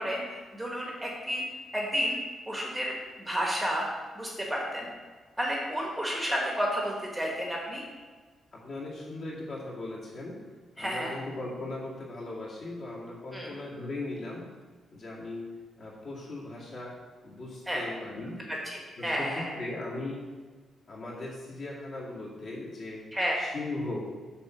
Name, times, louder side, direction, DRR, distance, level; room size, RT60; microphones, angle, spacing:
voice 1, 0.0-1.4 1.7-2.2 2.5-2.9 3.2-3.9 4.1-4.9 5.4-7.8 10.8-11.1 13.3-13.5 17.7-17.8 18.6-19.5 23.1-23.4, equal, 5° right, -2 dB, 1.0 m, -31 dB
voice 2, 8.5-10.5 10.8-14.5 14.9-18.4 19.0-20.3 20.9-23.1 23.4-24.1, left 2 dB, 45° left, -5 dB, 1.9 m, -38 dB
7.0 x 4.4 x 6.2 m, 1.4 s
wide cardioid pair, 180°, 0 cm